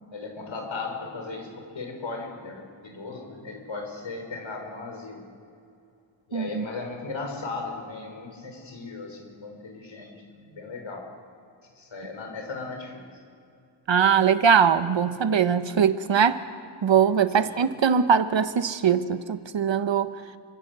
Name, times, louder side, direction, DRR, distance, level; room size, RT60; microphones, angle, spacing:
voice 1, 0.1-5.2 6.3-11.1 11.8-13.0 17.4-17.6, left 3 dB, 80° left, 2 dB, 6.1 m, -37 dB
voice 2, 6.3-6.6 13.9-16.4 16.8-20.2, right 7 dB, 75° right, 11 dB, 1.2 m, -21 dB
29.0 x 26.0 x 6.9 m, 2.5 s
wide cardioid pair, 105°, 46 cm